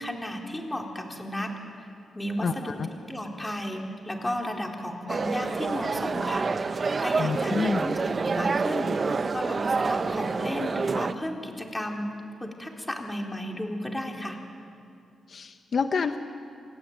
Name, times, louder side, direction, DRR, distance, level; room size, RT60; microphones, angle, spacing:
voice 1, 0.0-1.5 1.8-1.9 2.1-2.8 3.1-12.1 12.4-14.4, left 1 dB, 10° left, 1 dB, 3.8 m, -34 dB
voice 2, 2.4-2.9 7.2-7.8 15.3-16.2, left 5 dB, 55° left, 7 dB, 1.0 m, -28 dB
sound 1, 5.1-11.1, right 4 dB, 40° right, 1.0 m, -27 dB
28.5 x 18.5 x 9.4 m, 2.5 s
cardioid pair, 85°, 0 cm